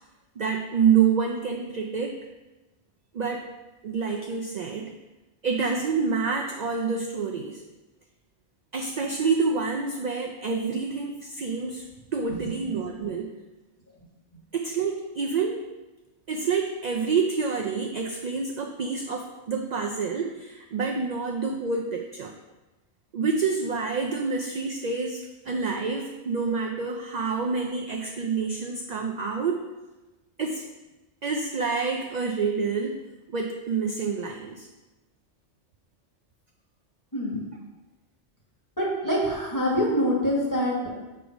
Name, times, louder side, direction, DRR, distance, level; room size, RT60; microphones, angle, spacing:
voice 1, 0.4-2.1 3.1-3.4 3.8-4.9 5.4-7.6 8.7-13.3 14.5-15.6 16.3-22.3 23.1-29.6 30.4-30.6 31.2-33.0 33.3-34.7, right 5 dB, 55° right, 2 dB, 0.5 m, -27 dB
voice 2, 37.1-37.4 38.8-40.9, equal, 15° left, -5 dB, 1.6 m, -25 dB
6.2 x 3.4 x 5.1 m, 1.1 s
omnidirectional pair, 1.1 m